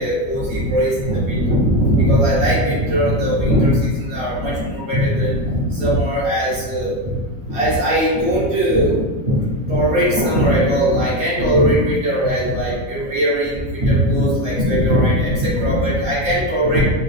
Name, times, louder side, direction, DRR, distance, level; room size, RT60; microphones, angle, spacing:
voice 1, 0.0-9.0 9.3-16.8, equal, 50° right, -7 dB, 1.6 m, -19 dB
5.3 x 2.5 x 3.2 m, 1.2 s
omnidirectional pair, 1.5 m